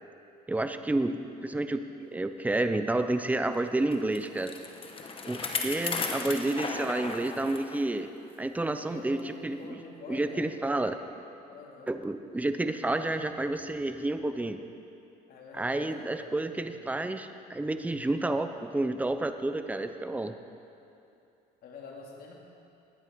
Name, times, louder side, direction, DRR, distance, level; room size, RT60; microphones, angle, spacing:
voice 1, 0.5-4.5 5.3-8.1 8.4-9.8 10.1-11.0 11.9-14.6 15.5-20.3, right 2 dB, 10° right, 8 dB, 0.7 m, -30 dB
Bicycle, 3.9-7.8 8.3-8.4 9.2-9.3, left 4 dB, 30° left, 1.3 m, -35 dB
voice 2, 8.7-10.5 11.5-11.9 15.3-16.5 21.6-22.3, left 4 dB, 65° left, -1 dB, 2.9 m, -46 dB
18.5 x 10.5 x 5.3 m, 2.7 s
cardioid pair, 110°, 17 cm